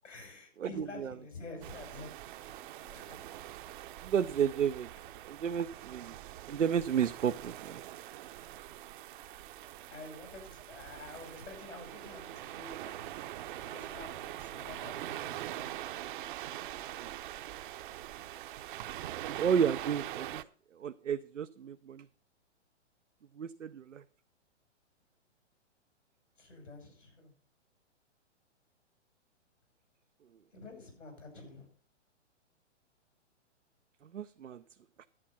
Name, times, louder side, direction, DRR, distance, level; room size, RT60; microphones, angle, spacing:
voice 1, 0.0-2.1 2.8-3.2 9.9-13.1 13.6-15.7 26.4-27.3 30.5-31.7, left 2 dB, 85° left, 3 dB, 6.6 m, -48 dB
voice 2, 0.6-1.1 4.0-4.9 5.3-6.2 6.5-7.8 17.0-17.1 19.3-20.4 20.7-22.1 23.3-24.0 34.0-34.6 35.0-35.1, right 8 dB, 90° right, 10 dB, 0.6 m, -32 dB
Ocean gentle waves on beach fizzing bubbles, 1.6-20.4, right 13 dB, 45° right, 0.7 m, -43 dB
11.0 x 8.8 x 5.7 m, 0.43 s
hypercardioid pair, 125°, 36 cm